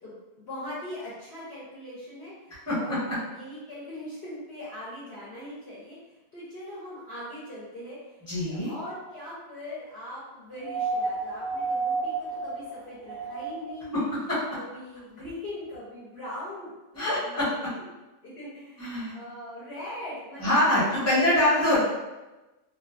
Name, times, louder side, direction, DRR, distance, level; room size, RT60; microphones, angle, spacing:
voice 1, 0.0-2.3 2.8-6.0 6.3-8.0 8.4-14.0 14.5-16.7 17.1-17.8 18.2-21.2, left 1 dB, 55° left, -9 dB, 0.8 m, -41 dB
voice 2, 2.5-3.0 8.3-8.7 13.9-14.0 14.3-14.4 16.9-17.5 18.8-19.1 20.4-21.8, left 1 dB, 10° left, -9 dB, 0.9 m, -24 dB
sound 1, 10.6-13.9 15.3-15.4, right 3 dB, 85° right, 1.0 m, -31 dB
2.7 x 2.2 x 2.4 m, 1.1 s
omnidirectional pair, 1.4 m